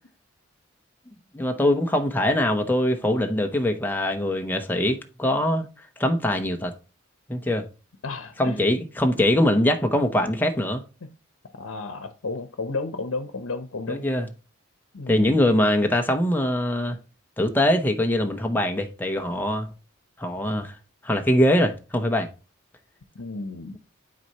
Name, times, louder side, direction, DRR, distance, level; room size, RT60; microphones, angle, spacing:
voice 1, 1.3-5.7 6.0-6.7 7.3-7.6 8.4-10.8 13.9-14.3 15.1-17.0 17.4-19.7 20.2-20.7 21.0-22.3, left 1 dB, 10° left, 0.7 m, -22 dB
voice 2, 8.0-8.7 11.5-14.0 14.9-15.4 23.1-23.8, left 3 dB, 85° left, 0.8 m, -32 dB
9.4 x 4.2 x 2.8 m
head